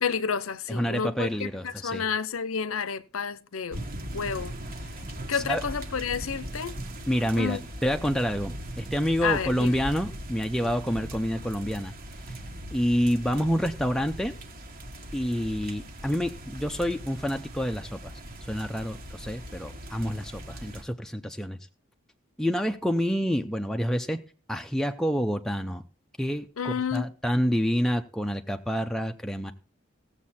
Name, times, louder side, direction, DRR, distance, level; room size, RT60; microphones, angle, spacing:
voice 1, 0.0-3.8 4.1-4.5 5.3-6.8 7.4-7.6 9.2-9.8 26.6-27.1, left 6 dB, 80° left, 0.7 m, -30 dB
voice 2, 0.7-2.0 5.3-5.6 7.1-11.9 12.7-14.3 15.1-18.1 18.5-21.6 22.4-24.2 24.5-25.8 26.2-29.5, equal, 5° left, 0.6 m, -28 dB
sound 1, 3.7-20.8, equal, 45° right, 1.7 m, -40 dB
16.5 x 7.4 x 4.3 m
head